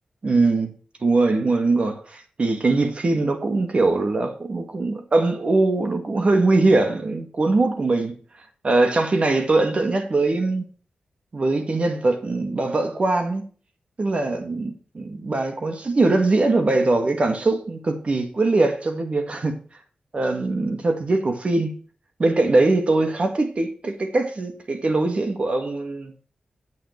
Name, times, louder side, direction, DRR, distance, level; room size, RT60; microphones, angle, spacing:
voice 1, 0.2-0.7 1.0-8.2 8.6-10.7 11.3-13.4 14.0-19.6 20.1-21.7 22.2-26.1, right 2 dB, 50° right, 2.0 m, -21 dB
8.7 x 6.3 x 4.5 m
cardioid pair, 65°, 3 cm